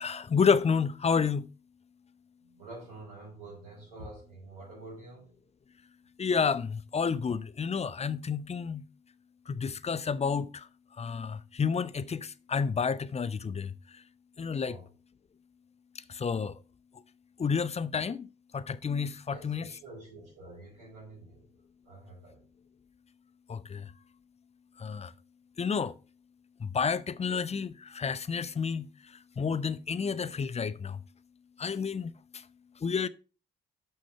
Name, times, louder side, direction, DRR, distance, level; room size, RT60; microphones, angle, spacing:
voice 1, 0.0-1.5 6.2-8.9 9.5-10.7 11.0-14.0 14.4-14.8 16.1-16.6 17.4-19.7 23.5-23.9 24.8-25.1 25.6-25.9 26.6-31.0 31.6-32.4 32.8-33.1, left 6 dB, 30° left, 0.6 m, -30 dB
voice 2, 2.4-5.4 14.6-14.9 19.3-21.4 21.8-22.4, right 2 dB, 85° right, 3.5 m, -47 dB
6.2 x 5.6 x 5.4 m
hypercardioid pair, 40°, 21 cm